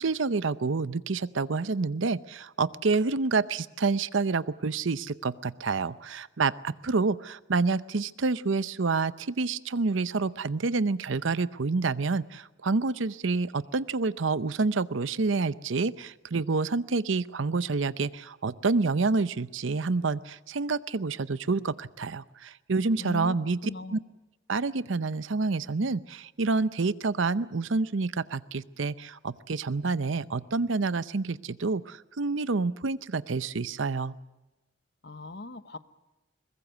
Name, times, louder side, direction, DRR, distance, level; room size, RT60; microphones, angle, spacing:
voice 1, 0.0-24.0 24.5-34.2, right 4 dB, 75° right, 16 dB, 0.7 m, -28 dB
voice 2, 23.0-23.4 23.6-24.0 35.0-35.8, left 2 dB, 55° left, 13 dB, 1.0 m, -39 dB
22.5 x 20.5 x 8.1 m, 1.1 s
head